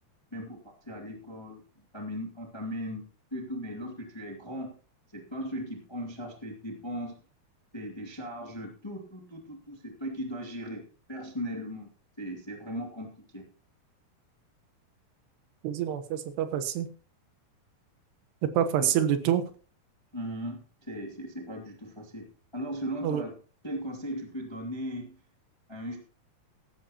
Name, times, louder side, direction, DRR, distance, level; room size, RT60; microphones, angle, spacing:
voice 1, 0.8-1.6 1.9-3.0 3.3-4.8 5.1-7.2 7.7-10.8 11.1-11.9 12.2-13.4 18.8-18.9 20.1-22.3 22.5-23.3 23.6-25.2 25.7-26.0, equal, 15° left, 2 dB, 1.1 m, -37 dB
voice 2, 15.6-16.9 18.4-19.5 23.0-23.2, right 10 dB, 85° right, 10 dB, 3.2 m, -27 dB
16.0 x 12.5 x 2.9 m, 0.38 s
omnidirectional pair, 4.6 m